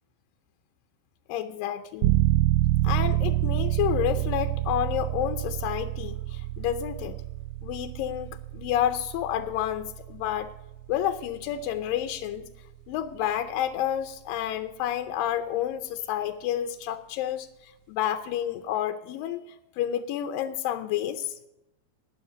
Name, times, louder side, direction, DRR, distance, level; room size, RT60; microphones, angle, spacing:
voice 1, 1.3-2.1 2.8-7.2 7.6-10.5 10.9-12.4 12.9-17.5 17.9-19.4 19.8-21.3, left 11 dB, 85° left, 7 dB, 2.4 m, -29 dB
sound 1, 2.0-12.6, right 16 dB, 80° right, 1.7 m, -28 dB
12.0 x 9.4 x 5.3 m, 0.92 s
omnidirectional pair, 4.0 m